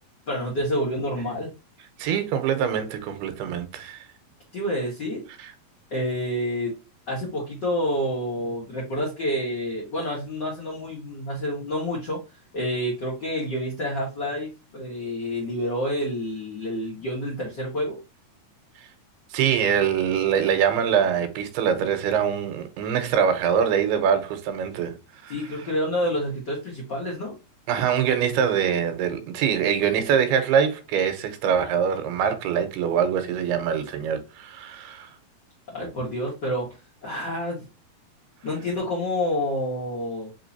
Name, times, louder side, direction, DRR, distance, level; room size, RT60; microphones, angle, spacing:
voice 1, 0.3-1.5 4.5-5.2 5.9-6.8 7.1-12.2 12.5-18.0 25.3-27.4 35.7-36.8 37.0-37.6 38.4-40.3, equal, 75° left, 0.9 m, -28 dB
voice 2, 2.0-4.1 5.4-5.5 19.3-25.0 25.2-25.7 27.7-35.1, right 8 dB, 85° right, 2.8 m, -24 dB
5.7 x 3.1 x 2.6 m
omnidirectional pair, 4.5 m